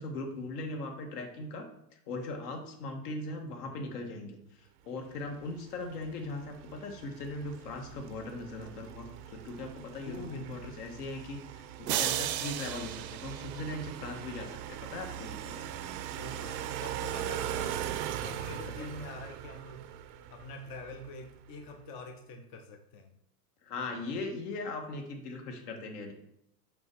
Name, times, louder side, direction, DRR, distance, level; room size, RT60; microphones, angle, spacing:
voice 1, 0.0-1.7 1.9-15.6 18.8-18.9 23.6-26.1, left 2 dB, 70° left, 3 dB, 1.8 m, -39 dB
sound 1, 5.2-21.4, right 11 dB, 40° right, 0.5 m, -41 dB
voice 2, 10.0-10.5 16.1-19.9 20.3-23.2, left 2 dB, 20° left, 5 dB, 0.3 m, -45 dB
sound 2, 11.9-14.2, right 12 dB, 85° right, 0.8 m, -34 dB
6.1 x 5.0 x 4.6 m, 0.77 s
supercardioid pair, 135°, 48 cm